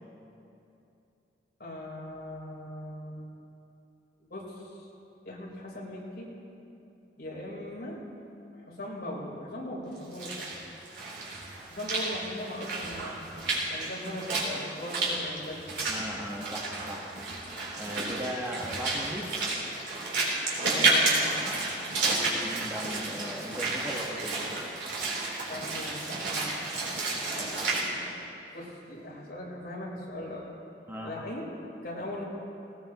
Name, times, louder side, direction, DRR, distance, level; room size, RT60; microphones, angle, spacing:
voice 1, 1.6-3.2 4.3-4.9 5.3-6.3 6.6-6.8 7.2-8.0 8.5-10.5 11.7-13.2 13.7-15.6 20.6-21.5 21.9-22.1 25.5-26.5 27.3-30.5 31.0-31.5 31.8-32.2, left 1 dB, 55° left, -4 dB, 3.8 m, -39 dB
Walk footsteps / Splash splatter, 10.0-27.8, right 2 dB, 75° right, 3.6 m, -31 dB
voice 2, 15.9-17.1 17.8-19.3 22.0-24.6 30.9-31.1, equal, 15° right, -2 dB, 1.3 m, -38 dB
19.0 x 18.5 x 3.0 m, 2.8 s
head